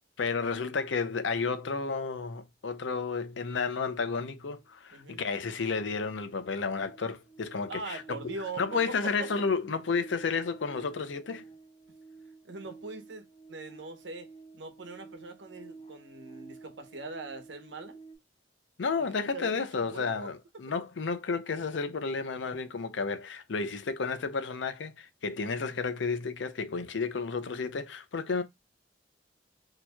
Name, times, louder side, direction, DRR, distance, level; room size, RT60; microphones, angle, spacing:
voice 1, 0.2-8.0 8.6-11.5 18.8-28.4, left 4 dB, 85° left, 0.6 m, -32 dB
sound 1, 4.6-4.7 5.0-18.2, right 4 dB, 40° left, 1.8 m, -52 dB
voice 2, 4.9-5.3 7.7-9.3 12.4-18.0 19.0-20.3, right 3 dB, 80° right, 1.0 m, -42 dB
4.3 x 2.9 x 2.2 m
head